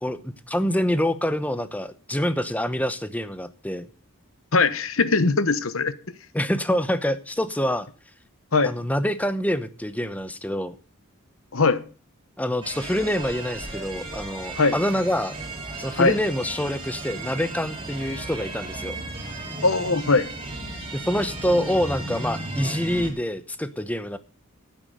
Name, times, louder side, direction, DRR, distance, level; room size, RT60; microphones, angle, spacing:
voice 1, 0.0-3.9 6.3-7.9 8.6-10.7 12.4-15.3 15.8-19.0 20.9-24.2, equal, 5° left, 0.8 m, -26 dB
voice 2, 4.5-5.9 8.5-8.7 11.5-11.8 14.6-14.7 16.0-16.2 19.6-20.3, left 3 dB, 70° left, 1.0 m, -20 dB
sound 1, 12.6-23.1, right 2 dB, 25° right, 3.0 m, -35 dB
10.5 x 9.3 x 6.7 m
head